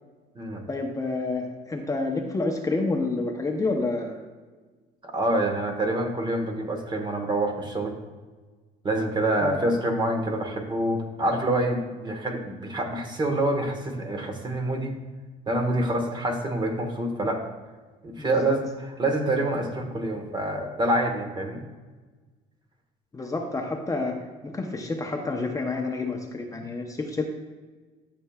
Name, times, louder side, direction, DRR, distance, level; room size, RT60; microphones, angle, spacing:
voice 1, 0.7-4.2 9.4-9.6 18.2-18.6 23.1-27.3, left 3 dB, 20° left, 2 dB, 0.8 m, -29 dB
voice 2, 5.0-7.9 8.8-15.0 15.5-17.4 18.0-18.6 19.0-21.6, right 1 dB, 25° right, 3 dB, 1.3 m, -26 dB
12.5 x 7.0 x 2.4 m, 1.3 s
cardioid pair, 110°, 17 cm